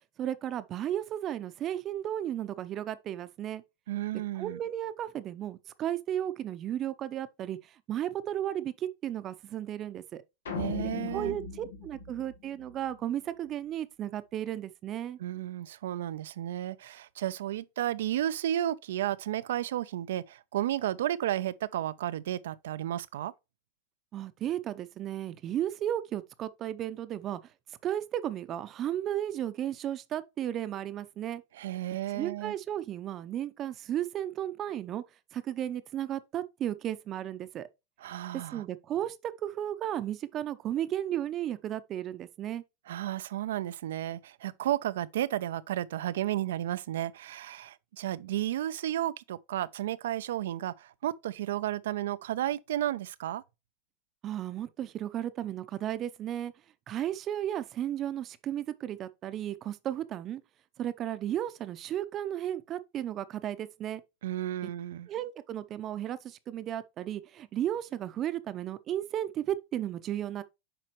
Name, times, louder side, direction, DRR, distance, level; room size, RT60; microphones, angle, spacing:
voice 1, 0.2-3.6 4.1-10.2 11.1-15.2 24.1-27.4 27.8-31.4 32.1-35.0 35.3-37.7 38.5-42.6 54.2-56.5 56.9-60.4 60.8-64.0 65.1-70.4, right 11 dB, 40° right, 0.6 m, -34 dB
voice 2, 3.9-4.6 10.5-11.4 15.2-23.3 31.5-32.5 38.0-38.6 42.9-53.4 64.2-65.1, right 12 dB, 80° right, 0.4 m, -33 dB
sound 1, 10.5-12.9, left 5 dB, 90° left, 1.4 m, -38 dB
7.7 x 4.9 x 3.0 m
hypercardioid pair, 105°, 0 cm